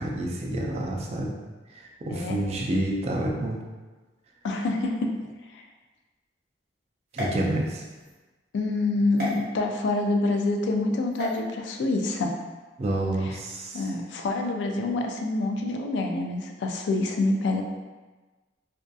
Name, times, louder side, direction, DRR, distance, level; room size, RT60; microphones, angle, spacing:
voice 1, 0.0-1.4 1.7-3.6 7.1-7.8 12.8-13.9, right 1 dB, 35° right, 0 dB, 0.3 m, -28 dB
voice 2, 4.4-5.6 8.5-12.3 13.2-13.4 13.7-17.6, left 2 dB, 70° left, 3 dB, 0.3 m, -27 dB
sound 1, 7.1-8.1 9.2-9.3 11.1-11.4, left 1 dB, 55° right, 0.8 m, -34 dB
2.6 x 2.3 x 2.2 m, 1.2 s
head